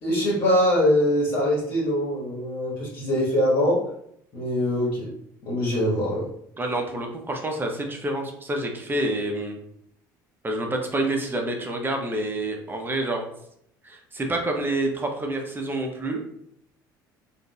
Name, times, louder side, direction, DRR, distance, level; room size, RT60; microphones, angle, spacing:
voice 1, 0.0-3.8 4.3-5.1 5.4-6.3, left 1 dB, 50° left, -6 dB, 1.5 m, -23 dB
voice 2, 6.6-9.6 10.4-13.2 13.8-16.2, right 1 dB, 20° right, 2 dB, 0.8 m, -28 dB
3.8 x 2.6 x 2.4 m, 0.72 s
hypercardioid pair, 65°, 10 cm